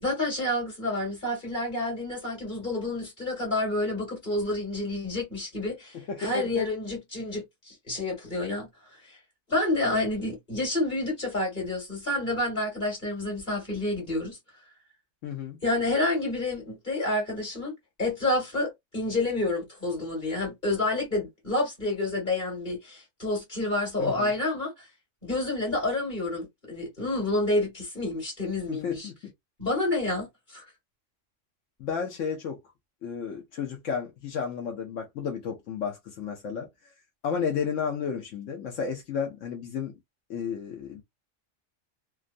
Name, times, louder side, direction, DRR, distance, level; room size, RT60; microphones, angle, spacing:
voice 1, 0.0-8.7 9.1-9.2 9.5-14.4 15.6-24.9 25.2-29.1 29.6-30.6, left 2 dB, 40° left, 1.7 m, -29 dB
voice 2, 6.1-6.7 15.2-15.6 24.0-24.3 28.7-29.3 31.8-32.6 33.0-36.7 37.2-39.9 40.3-41.0, left 6 dB, 80° left, 1.1 m, -32 dB
2.9 x 2.3 x 2.5 m
omnidirectional pair, 1.3 m